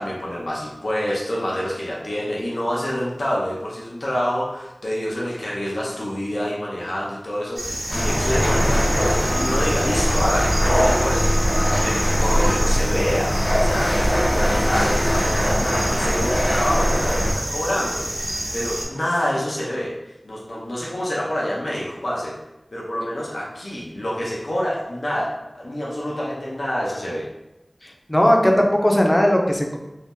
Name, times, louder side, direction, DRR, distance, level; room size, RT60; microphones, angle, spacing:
voice 1, 0.0-22.4 22.7-27.3, equal, 85° left, -5 dB, 0.5 m, -27 dB
sound 1, 7.6-18.9, equal, 65° right, 0.9 m, -29 dB
sound 2, 7.9-17.3, equal, 60° left, 1.0 m, -21 dB
voice 2, 27.8-29.8, equal, 20° left, 1 dB, 0.5 m, -18 dB
2.7 x 2.0 x 3.5 m, 0.95 s
wide cardioid pair, 45°, 0 cm